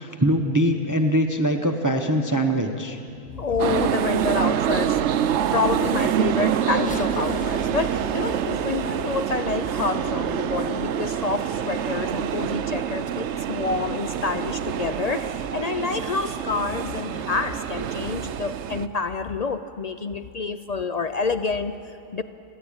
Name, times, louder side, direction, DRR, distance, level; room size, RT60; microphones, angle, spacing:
voice 1, 0.0-3.0, equal, 15° right, 5 dB, 0.8 m, -22 dB
voice 2, 3.3-5.2 5.5-22.2, left 4 dB, 75° left, 10 dB, 0.3 m, -28 dB
sound 1, 3.6-18.9, right 9 dB, 65° right, 0.9 m, -26 dB
Race car auto racing / Accelerating revving vroom, 6.1-10.3 11.0-11.1 12.2-12.4, left 1 dB, 5° left, 1.5 m, -36 dB
29.5 x 11.0 x 8.7 m, 2.6 s
omnidirectional pair, 1.4 m